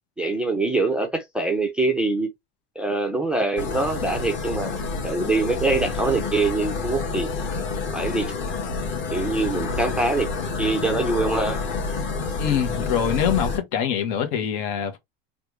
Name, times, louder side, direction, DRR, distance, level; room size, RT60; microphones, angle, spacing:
voice 1, 0.2-2.3 2.8-4.8 5.0-7.3 7.9-8.3 9.1-10.3 10.6-11.6, right 2 dB, 5° right, 0.5 m, -24 dB
sound 1, 3.6-13.6, left 4 dB, 35° left, 1.4 m, -28 dB
voice 2, 12.4-15.0, left 8 dB, 65° left, 1.3 m, -24 dB
3.4 x 2.4 x 3.1 m
supercardioid pair, 150°, 32 cm